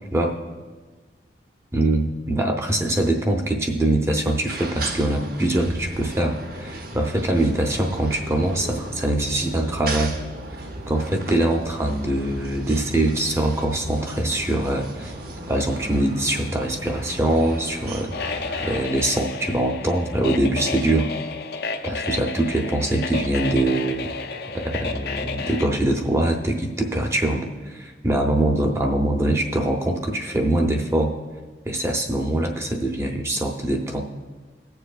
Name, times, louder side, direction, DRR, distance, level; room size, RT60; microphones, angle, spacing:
voice 1, 1.7-10.1 10.9-15.1 15.5-21.1 21.8-24.1 24.5-31.1 31.7-34.0, right 1 dB, 15° right, 3 dB, 0.7 m, -23 dB
sound 1, 4.4-18.9, right 1 dB, 50° right, 0.8 m, -35 dB
sound 2, 18.1-25.7, left 4 dB, 55° left, 0.5 m, -31 dB
19.5 x 6.8 x 2.4 m, 1.3 s
head